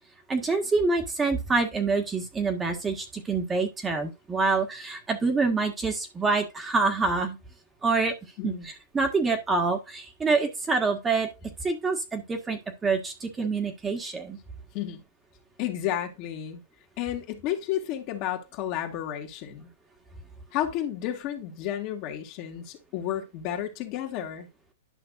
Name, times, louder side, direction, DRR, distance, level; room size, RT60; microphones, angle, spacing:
voice 1, 0.3-7.4 7.8-8.1 8.4-11.3 11.6-14.4, right 4 dB, 15° right, 1.7 m, -26 dB
voice 2, 8.4-8.7 14.7-15.0 15.6-16.6 17.0-19.7 20.5-24.5, left 11 dB, 45° left, 2.0 m, -32 dB
11.0 x 5.9 x 2.5 m
hypercardioid pair, 120°, 0 cm